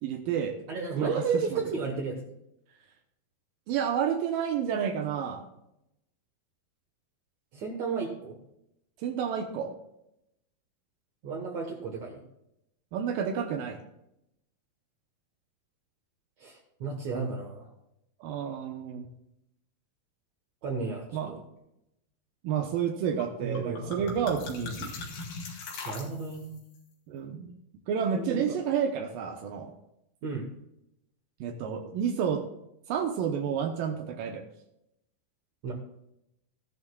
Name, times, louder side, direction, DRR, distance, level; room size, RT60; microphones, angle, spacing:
voice 1, 0.0-0.6 1.0-1.6 3.7-5.4 9.0-9.7 12.9-13.8 18.2-19.1 21.1-21.3 22.4-24.9 27.1-27.5 27.9-29.7 31.4-32.4 32.9-34.4, right 7 dB, 80° right, 3 dB, 2.6 m, -30 dB
voice 2, 0.7-2.3 7.5-8.4 11.2-12.2 16.4-17.7 20.6-21.4 23.4-24.2 25.9-26.6 28.1-28.4 30.2-30.5 35.6-35.7, right 5 dB, 60° right, 0 dB, 2.3 m, -33 dB
sound 1, 23.2-23.3 23.6-26.6, left 4 dB, 85° left, 3.8 m, -39 dB
14.5 x 11.0 x 2.3 m, 0.82 s
omnidirectional pair, 4.1 m